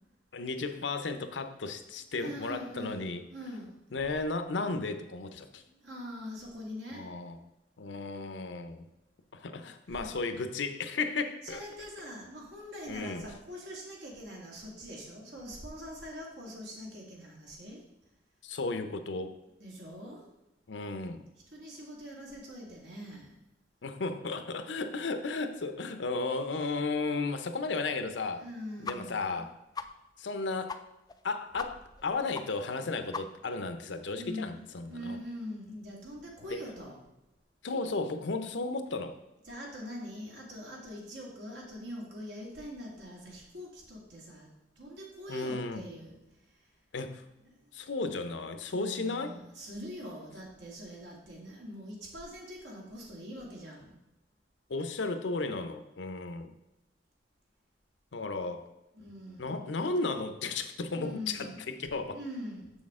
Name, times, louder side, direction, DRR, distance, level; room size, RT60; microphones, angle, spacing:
voice 1, 0.3-3.2 3.9-5.6 6.9-7.4 7.8-8.9 9.3-11.6 12.9-13.3 18.4-19.4 20.7-21.2 23.8-28.4 28.8-29.5 30.2-30.8 31.2-35.2 36.5-36.6 37.6-39.2 45.3-45.8 46.9-47.3 47.7-49.3 54.7-56.5 58.1-58.7 59.4-62.2, left 3 dB, 75° left, 9 dB, 0.6 m, -34 dB
voice 2, 2.2-3.9 5.5-7.1 9.9-10.1 11.4-17.8 19.6-20.3 21.5-23.4 28.4-29.5 34.1-37.0 39.5-44.5 44.8-46.1 47.6-47.7 48.7-54.0 58.9-59.7 61.0-61.6 62.0-62.7, equal, 75° right, -2 dB, 2.1 m, -43 dB
sound 1, 28.8-29.0 29.3-29.4 29.7-29.9 30.3-30.4 30.7-30.8 31.1-31.2 31.6-31.7 32.0-32.1 32.3-32.4 32.7-32.8 33.1-33.5, left 5 dB, 20° left, 0.3 m, -38 dB
6.9 x 6.3 x 3.6 m, 0.97 s
head